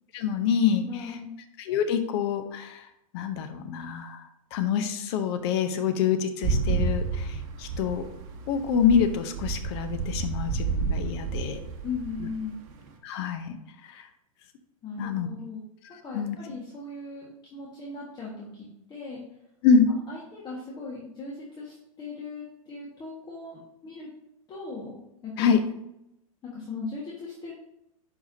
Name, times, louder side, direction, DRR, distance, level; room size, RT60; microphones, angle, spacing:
voice 1, 0.1-1.2 1.6-2.8 3.1-4.2 4.5-8.0 8.5-11.6 12.2-12.3 13.0-13.6 13.9-14.1 15.0-15.3 15.8-16.4 19.6-19.9 25.4-25.6, left 7 dB, 50° left, 8 dB, 0.8 m, -26 dB
voice 2, 0.9-1.3 11.8-12.6 14.8-15.6 16.0-19.2 20.1-24.1 24.5-25.5 26.4-27.5, left 4 dB, 25° left, -5 dB, 1.7 m, -38 dB
sound 1, 6.4-12.9, right 5 dB, 40° right, 1.1 m, -30 dB
10.5 x 4.8 x 2.8 m, 0.83 s
hypercardioid pair, 105°, 18 cm